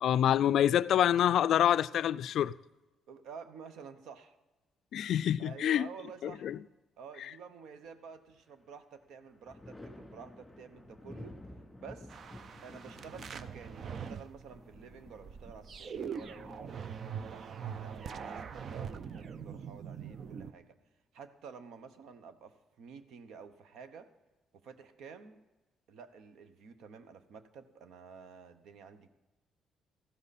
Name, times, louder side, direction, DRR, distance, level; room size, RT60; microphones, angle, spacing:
voice 1, 0.0-2.5 4.9-5.9 6.2-6.6, left 10 dB, 70° left, 0.3 m, -26 dB
voice 2, 3.1-4.4 5.4-6.4 7.0-11.4 11.8-12.2 12.6-16.8 17.3-20.7 21.1-24.1 24.5-25.4 25.9-29.1, right 6 dB, 80° right, 1.0 m, -50 dB
Thunder, 7.8-8.6 9.0-18.5 20.0-20.9, left 1 dB, 10° left, 2.9 m, -53 dB
sound 1, 12.1-20.5, right 7 dB, 55° right, 0.6 m, -43 dB
14.5 x 12.5 x 4.2 m
cardioid pair, 90°, 0 cm